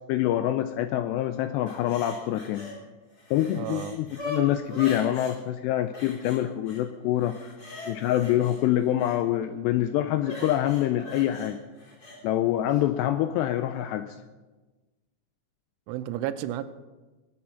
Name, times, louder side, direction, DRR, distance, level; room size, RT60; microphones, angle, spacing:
voice 1, 0.1-2.7 3.3-7.5 7.9-11.6 12.2-14.2, left 12 dB, 85° left, 10 dB, 2.5 m, -26 dB
sound 1, 1.7-2.8 3.1-5.4 5.9-6.8 7.2-9.2 10.2-12.2 12.7-12.8, left 1 dB, 25° left, 2.5 m, -41 dB
voice 2, 3.6-4.0 15.9-16.6, right 12 dB, 85° right, 11 dB, 3.2 m, -32 dB
21.5 x 8.5 x 5.8 m, 1.2 s
omnidirectional pair, 5.4 m